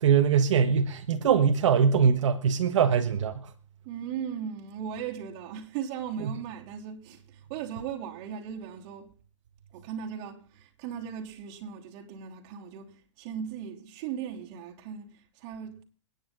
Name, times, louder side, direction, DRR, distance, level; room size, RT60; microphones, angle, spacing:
voice 1, 0.0-3.5, right 7 dB, 75° right, 1.4 m, -22 dB
voice 2, 3.9-9.1 9.7-15.8, right 8 dB, 45° right, 3.3 m, -38 dB
27.5 x 10.0 x 3.9 m
hypercardioid pair, 135°, 16 cm